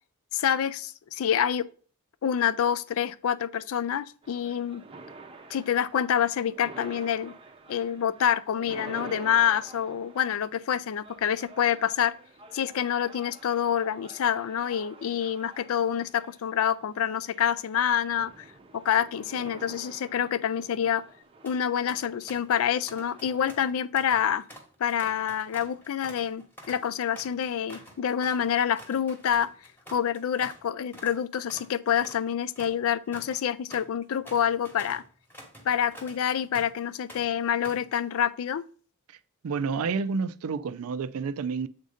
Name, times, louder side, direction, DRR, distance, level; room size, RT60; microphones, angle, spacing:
voice 1, 0.3-1.7 2.2-4.8 5.5-7.3 7.7-12.1 12.5-18.5 18.7-21.0 21.4-24.4 24.8-29.5 29.9-35.0 35.7-38.6, left 9 dB, 65° left, 0.4 m, -27 dB
sound 1, 4.2-23.7, right 3 dB, 25° right, 0.6 m, -49 dB
sound 2, 21.2-21.6 21.9-22.6 22.9-30.6 30.9-31.2 31.5-36.8 37.1-37.9, equal, 10° left, 1.0 m, -48 dB
voice 2, 39.4-41.7, right 5 dB, 70° right, 0.4 m, -29 dB
7.4 x 2.7 x 4.9 m
head